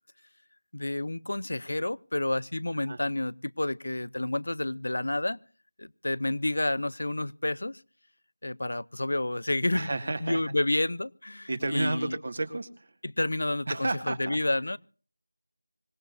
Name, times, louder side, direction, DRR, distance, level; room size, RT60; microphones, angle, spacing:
voice 1, 0.7-5.4 5.8-7.8 8.4-9.9 10.2-12.2 13.0-14.8, left 1 dB, 70° left, 0.7 m, -30 dB
voice 2, 9.7-10.4 11.5-12.9 13.7-14.4, right 2 dB, 55° right, 2.0 m, -31 dB
25.5 x 18.0 x 2.6 m
figure-of-eight pair, 170°, 0 cm